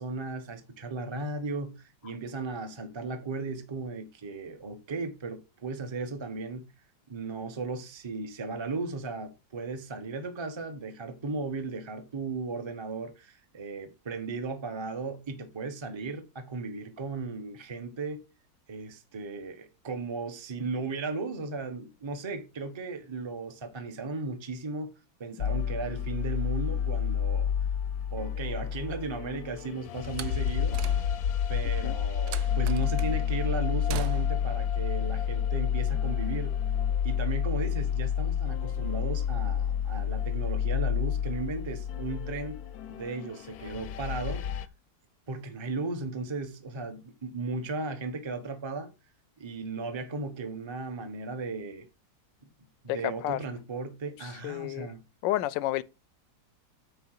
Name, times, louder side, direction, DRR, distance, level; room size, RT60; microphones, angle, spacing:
voice 1, 0.0-6.7 7.1-18.2 18.7-24.9 25.2-27.5 28.1-30.8 31.5-36.6 37.0-42.6 42.9-44.4 45.3-48.9 49.4-51.9 52.8-55.0, right 3 dB, 20° right, 0.8 m, -36 dB
sound 1, 25.4-44.7, left 9 dB, 65° left, 1.0 m, -29 dB
Slam, 30.0-31.4 32.3-33.2 33.9-34.5, right 12 dB, 70° right, 1.1 m, -41 dB
voice 2, 52.9-53.4 54.4-54.9 55.2-55.8, left 15 dB, 85° left, 1.3 m, -30 dB
7.9 x 4.8 x 6.4 m
omnidirectional pair, 1.9 m